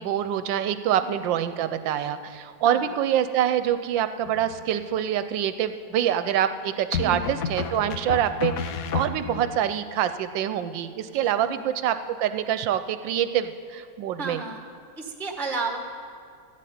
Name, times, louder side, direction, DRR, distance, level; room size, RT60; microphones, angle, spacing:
voice 1, 0.0-14.4, right 10 dB, 75° right, 11 dB, 1.2 m, -26 dB
sound 1, 4.3-4.9 6.9-9.6, left 6 dB, 80° left, 0.7 m, -31 dB
voice 2, 7.0-7.3 11.5-11.6 14.2-14.6 15.0-15.8, right 3 dB, ahead, 3 dB, 0.6 m, -32 dB
13.5 x 7.5 x 9.3 m, 2.3 s
omnidirectional pair, 2.1 m